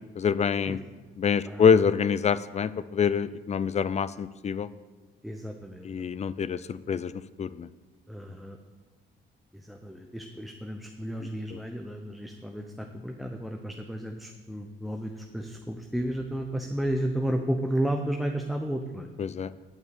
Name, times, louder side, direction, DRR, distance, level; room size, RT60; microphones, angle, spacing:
voice 1, 0.2-0.8 1.2-4.7 5.8-7.1 7.4-7.7 19.2-19.5, left 6 dB, 35° left, 16 dB, 0.5 m, -25 dB
voice 2, 1.4-1.8 5.2-5.9 8.1-8.6 9.5-19.1, right 1 dB, ahead, 3 dB, 0.8 m, -32 dB
9.5 x 5.5 x 8.1 m, 1.3 s
cardioid pair, 90°, 20 cm